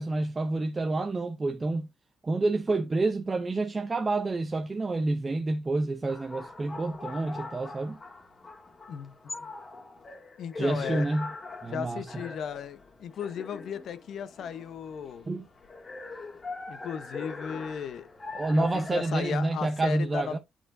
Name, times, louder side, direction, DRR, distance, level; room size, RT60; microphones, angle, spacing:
voice 1, 0.0-1.9 2.2-8.0 10.6-11.3 11.6-12.0 15.3-15.5 18.3-20.4, right 2 dB, 25° right, 0.7 m, -28 dB
sound 1, 6.1-19.4, left 3 dB, 35° left, 1.7 m, -42 dB
voice 2, 8.9-9.5 10.4-11.1 11.6-15.3 16.7-18.1 18.5-20.4, left 7 dB, 70° left, 0.8 m, -36 dB
9.1 x 4.3 x 2.6 m
cardioid pair, 90°, 0 cm